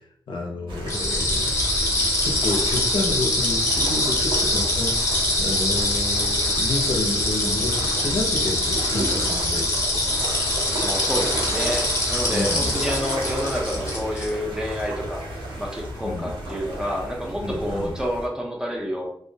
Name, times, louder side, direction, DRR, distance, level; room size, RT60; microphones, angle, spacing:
voice 1, 0.3-10.0 12.3-12.8 16.0-16.3 17.4-17.9, left 2 dB, 75° left, 1 dB, 0.5 m, -30 dB
sound 1, 0.7-18.3, right 1 dB, 80° right, 0.6 m, -32 dB
sound 2, 0.9-14.3, left 1 dB, 35° left, 0.6 m, -24 dB
voice 2, 10.8-15.3 15.6-19.1, equal, 10° right, -1 dB, 0.4 m, -29 dB
2.2 x 2.1 x 2.6 m, 0.69 s
wide cardioid pair, 150°, 8 cm